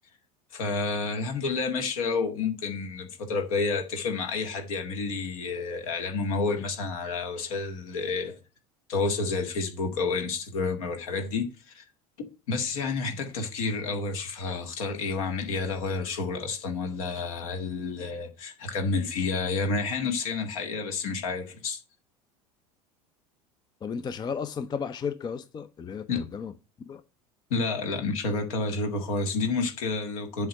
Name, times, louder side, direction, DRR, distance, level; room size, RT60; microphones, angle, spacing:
voice 1, 0.5-8.4 8.9-11.8 12.5-21.8 26.1-26.3 27.5-30.5, left 4 dB, 65° left, 1.7 m, -30 dB
voice 2, 23.8-26.5 26.9-27.0, left 6 dB, 20° left, 0.5 m, -34 dB
7.7 x 3.5 x 6.5 m
figure-of-eight pair, 70°, 19 cm